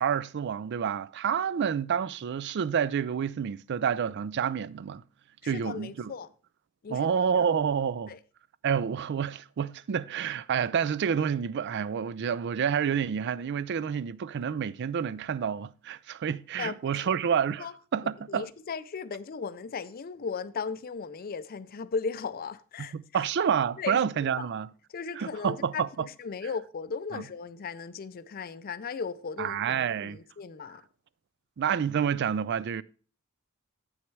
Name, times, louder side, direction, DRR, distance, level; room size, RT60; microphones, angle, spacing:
voice 1, 0.0-5.0 5.5-6.1 6.9-8.2 8.6-18.5 22.8-24.7 25.1-26.1 27.1-27.2 29.4-30.2 31.6-32.8, right 7 dB, 55° right, 0.4 m, -29 dB
voice 2, 5.4-6.3 6.8-7.1 8.1-8.2 16.6-16.9 17.6-17.7 18.3-23.2 23.8-24.0 24.4-24.5 24.9-30.8, left 5 dB, 45° left, 0.4 m, -36 dB
8.1 x 6.3 x 4.6 m
head